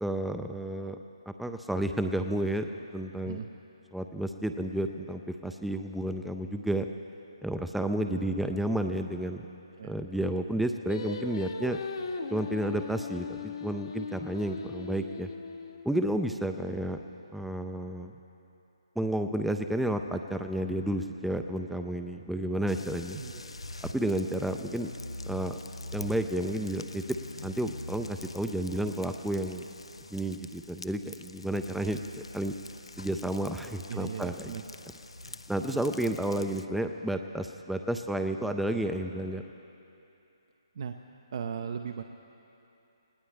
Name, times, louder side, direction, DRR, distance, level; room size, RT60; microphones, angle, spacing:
voice 1, 0.0-1.0 1.3-2.7 2.9-3.4 3.9-6.9 7.4-9.5 9.8-11.8 12.3-15.3 15.8-17.0 17.3-18.1 19.0-23.2 23.8-24.9 25.2-25.6 25.9-27.2 27.4-29.6 30.1-32.5 33.0-34.5 35.5-39.4, right 1 dB, ahead, 6 dB, 0.4 m, -31 dB
voice 2, 9.8-10.2 23.1-23.4 33.9-34.6 35.7-35.8 40.7-41.0 41.3-42.0, right 7 dB, 55° right, 6 dB, 0.6 m, -37 dB
Singing, 10.9-16.2, left 5 dB, 60° left, 1.0 m, -38 dB
sound 1, 22.7-36.6, left 2 dB, 85° left, 0.6 m, -44 dB
20.0 x 17.0 x 3.4 m, 2.9 s
figure-of-eight pair, 145°, 3 cm